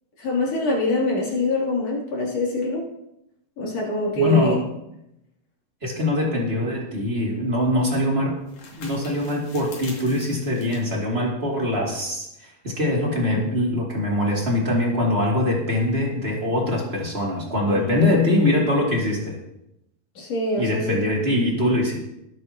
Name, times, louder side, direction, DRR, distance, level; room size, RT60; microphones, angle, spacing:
voice 1, 0.2-2.8 3.6-4.6 17.7-18.2 20.2-21.1, left 1 dB, 45° left, -4 dB, 3.9 m, -24 dB
voice 2, 4.1-4.7 5.8-8.4 8.8-19.4 20.6-21.9, left 1 dB, 20° right, -2 dB, 2.2 m, -23 dB
Crumpling Paper, 7.0-12.2, left 4 dB, 85° left, 4.5 m, -46 dB
19.5 x 9.2 x 2.9 m, 0.84 s
omnidirectional pair, 4.2 m